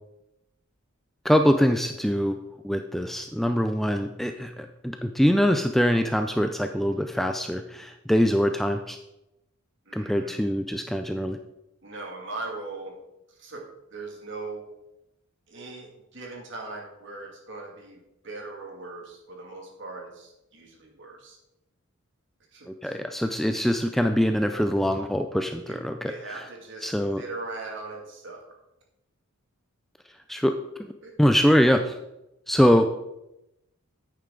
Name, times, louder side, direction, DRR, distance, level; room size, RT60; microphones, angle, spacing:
voice 1, 1.2-2.4 2.6-9.0 9.9-11.4 22.8-26.5 26.8-27.2 30.3-30.5 30.8-30.9 31.2-32.0 32.5-32.9, equal, ahead, 6 dB, 0.3 m, -23 dB
voice 2, 9.9-10.4 11.8-13.0 13.3-13.6 13.9-14.7 15.5-21.4 22.5-23.0 23.3-23.4 25.7-28.4 31.0-31.1, right 3 dB, 55° right, 0 dB, 2.3 m, -40 dB
10.0 x 8.8 x 3.8 m, 0.89 s
head